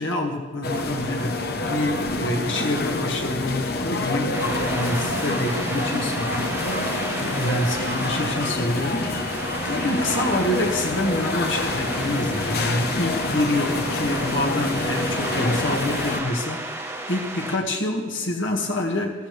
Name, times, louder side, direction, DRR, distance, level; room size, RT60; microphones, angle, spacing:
voice 1, 0.0-19.1, left 1 dB, 85° left, 0 dB, 1.7 m, -27 dB
sound 1, 0.6-16.2, left 2 dB, 55° left, 0.9 m, -27 dB
sound 2, 4.3-17.6, right 2 dB, 10° right, 1.0 m, -33 dB
14.5 x 13.5 x 3.3 m, 1.4 s
head